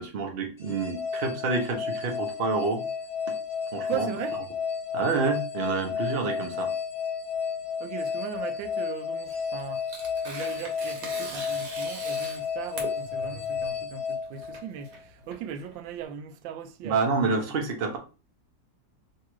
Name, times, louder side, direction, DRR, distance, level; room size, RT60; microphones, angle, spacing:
voice 1, 0.0-2.8 3.7-4.1 4.9-6.7 16.8-18.0, right 4 dB, 45° right, 0.7 m, -28 dB
sound 1, 0.6-15.0, left 6 dB, 20° left, 1.1 m, -32 dB
voice 2, 3.9-4.4 7.8-9.9 10.2-17.0, right 8 dB, 85° right, 1.3 m, -38 dB
Tearing, 9.2-16.0, right 3 dB, 65° right, 1.5 m, -42 dB
3.2 x 2.8 x 4.5 m
omnidirectional pair, 2.0 m